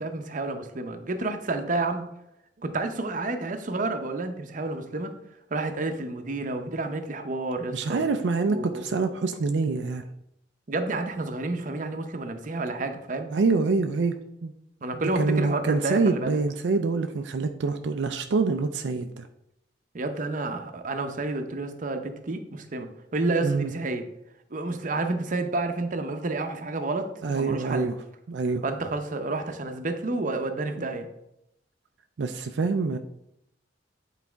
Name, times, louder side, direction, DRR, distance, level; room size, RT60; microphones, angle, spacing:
voice 1, 0.0-2.1 2.6-5.1 5.5-8.0 8.5-8.8 10.7-13.3 14.8-16.4 19.9-22.9 23.1-24.0 24.5-27.9 28.6-31.1, right 2 dB, 45° right, 6 dB, 0.7 m, -30 dB
voice 2, 7.7-10.0 13.3-14.1 14.4-14.5 14.9-19.2 23.4-23.7 27.2-27.9 28.3-28.6 32.2-33.0, right 4 dB, 85° right, 6 dB, 0.4 m, -26 dB
8.5 x 4.0 x 3.5 m, 0.81 s
head